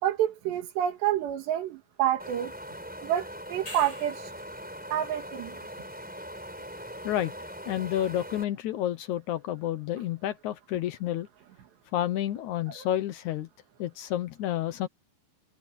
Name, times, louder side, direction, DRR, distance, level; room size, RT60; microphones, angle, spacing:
voice 1, 0.0-2.5 3.0-4.3 4.9-5.6 12.8-12.9, right 11 dB, 90° right, 4.0 m, -28 dB
Wind, 2.2-8.4, equal, ahead, 3.9 m, -41 dB
sound 1, 3.5-4.4 9.1-9.2, left 2 dB, 25° left, 8.6 m, -43 dB
voice 2, 7.7-11.3 11.9-13.5 13.8-14.9, left 12 dB, 80° left, 1.7 m, -30 dB
omnidirectional pair, 4.8 m